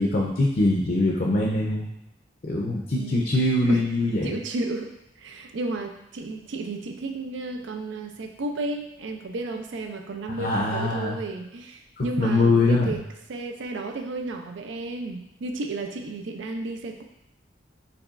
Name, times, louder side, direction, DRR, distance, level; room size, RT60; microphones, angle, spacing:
voice 1, 0.0-1.9 2.4-4.4 10.3-11.2 12.0-12.9, left 2 dB, 50° left, -1 dB, 0.5 m, -23 dB
voice 2, 3.0-3.3 3.7-13.0 13.3-17.0, right 2 dB, 85° right, 4 dB, 0.4 m, -33 dB
6.6 x 3.1 x 2.4 m, 0.84 s
head